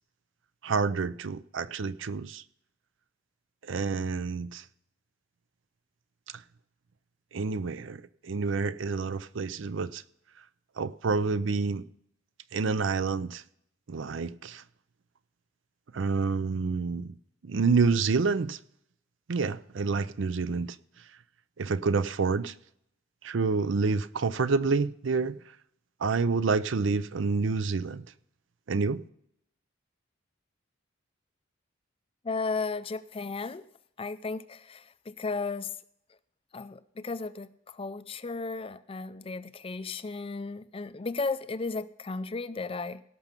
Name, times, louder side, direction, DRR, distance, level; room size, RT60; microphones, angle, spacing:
voice 1, 0.6-2.4 3.6-4.6 7.3-10.0 10.8-11.9 12.5-13.4 13.9-14.6 15.9-17.2 17.4-18.6 19.3-20.8 21.6-22.5 23.2-25.4 26.0-28.0 28.7-29.0, right 4 dB, 65° right, 0.5 m, -28 dB
voice 2, 32.2-33.7 34.0-35.7 36.5-43.0, left 4 dB, 25° left, 0.4 m, -34 dB
17.5 x 6.1 x 5.2 m
head